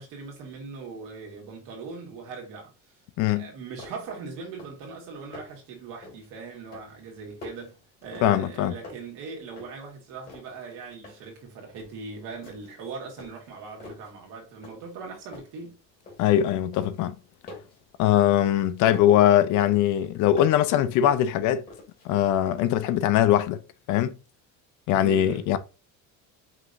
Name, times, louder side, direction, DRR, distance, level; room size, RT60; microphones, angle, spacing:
voice 1, 0.0-2.7 3.2-7.7 8.0-15.8 24.9-25.5, right 4 dB, 70° right, 2.0 m, -40 dB
voice 2, 3.2-3.5 8.2-8.7 16.2-17.2 18.0-21.6 22.0-23.6 23.9-24.1 24.9-25.6, left 11 dB, 65° left, 0.6 m, -21 dB
sound 1, 3.8-4.2 4.5-4.9 5.2-5.7 6.0-6.3 6.7-8.6 8.8-9.9 10.2-11.4 11.8-12.0 12.4-12.8 13.2-14.1 14.6-15.0 15.3-16.4 16.7-19.2 19.6-20.7 21.0-22.1, left 3 dB, 30° left, 2.4 m, -46 dB
5.5 x 3.0 x 2.6 m
cardioid pair, 140°, 33 cm